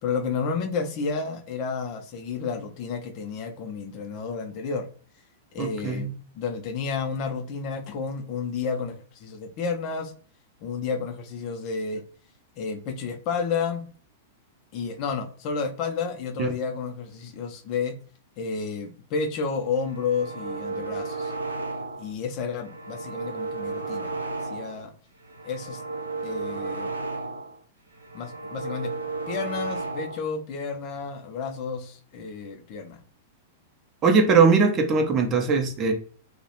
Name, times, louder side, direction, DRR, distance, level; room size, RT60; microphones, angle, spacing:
voice 1, 0.0-4.9 5.5-6.1 6.3-9.0 9.2-10.1 10.6-12.0 12.6-13.8 14.7-18.0 18.4-21.3 22.0-24.2 24.5-24.9 25.4-25.8 26.2-26.9 28.1-28.9 29.3-33.0, left 5 dB, 40° left, 0.4 m, -31 dB
voice 2, 5.6-6.1 16.4-16.5 34.0-35.9, right 4 dB, 30° right, 0.5 m, -20 dB
sound 1, 19.8-22.1 22.5-24.9 25.2-27.6 27.9-30.3, right 3 dB, 85° right, 0.4 m, -33 dB
2.3 x 2.0 x 2.8 m
figure-of-eight pair, 100°, 0 cm